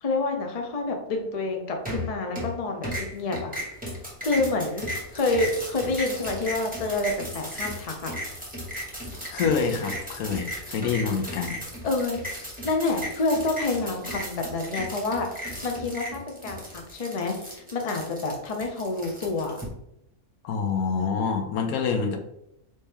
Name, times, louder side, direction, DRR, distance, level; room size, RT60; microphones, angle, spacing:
voice 1, 0.0-3.5 4.2-8.1 11.8-12.2 12.6-19.6, left 3 dB, 40° left, 3 dB, 0.5 m, -28 dB
sound 1, 1.9-2.6 2.8-19.6, equal, 5° right, 1.0 m, -35 dB
voice 2, 9.3-11.6 20.4-22.2, left 5 dB, 75° left, 5 dB, 1.1 m, -26 dB
4.2 x 3.4 x 3.5 m, 0.81 s
omnidirectional pair, 1.6 m